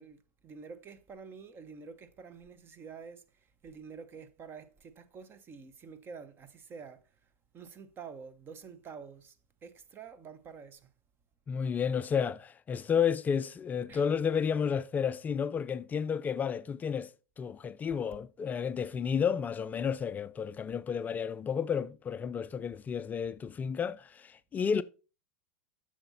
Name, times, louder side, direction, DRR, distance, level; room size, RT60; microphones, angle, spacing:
voice 1, 0.0-7.0 7.5-9.4 9.6-10.9 13.9-14.0, right 5 dB, 30° right, 1.0 m, -48 dB
voice 2, 11.5-17.1 17.4-24.8, left 7 dB, 20° left, 0.4 m, -31 dB
7.6 x 6.4 x 4.1 m
hypercardioid pair, 105°, 8 cm